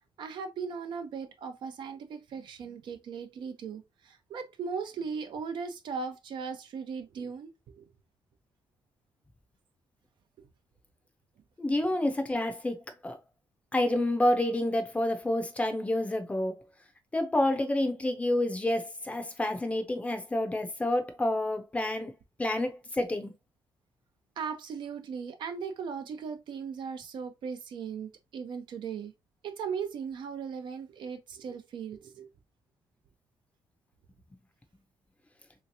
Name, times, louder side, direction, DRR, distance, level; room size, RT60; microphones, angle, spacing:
voice 1, 0.2-7.9 24.4-29.1 29.4-32.3, right 6 dB, 70° right, 0.7 m, -38 dB
voice 2, 11.6-13.2 13.7-16.5 17.1-22.1 22.4-23.3, left 1 dB, 15° left, 0.6 m, -28 dB
3.4 x 3.0 x 2.7 m
cardioid pair, 140°, 8 cm